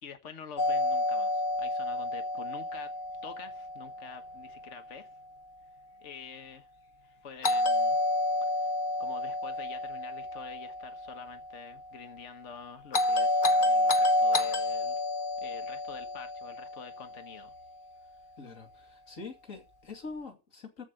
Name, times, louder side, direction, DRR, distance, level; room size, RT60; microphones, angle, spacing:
voice 1, 0.0-2.9 3.2-5.1 6.0-6.7 7.2-8.0 8.6-8.7 9.0-15.0 15.4-17.5, left 6 dB, 60° left, 1.6 m, -47 dB
Doorbell, 0.6-4.6 7.4-11.7 12.9-17.3, left 2 dB, 40° left, 1.2 m, -29 dB
voice 2, 18.4-20.8, left 4 dB, 75° left, 2.9 m, -44 dB
14.5 x 5.1 x 7.7 m
omnidirectional pair, 1.4 m